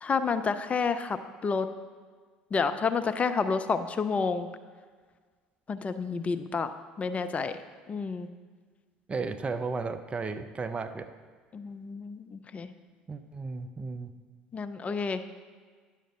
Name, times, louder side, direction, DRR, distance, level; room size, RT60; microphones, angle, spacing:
voice 1, 0.0-1.7 2.5-4.5 5.7-7.6 7.9-8.3 11.5-12.7 14.5-15.2, left 5 dB, 30° left, 10 dB, 0.4 m, -30 dB
voice 2, 9.1-11.2 13.1-14.1, right 4 dB, 25° right, 9 dB, 0.5 m, -34 dB
10.0 x 6.5 x 3.8 m, 1.5 s
figure-of-eight pair, 60°, 4 cm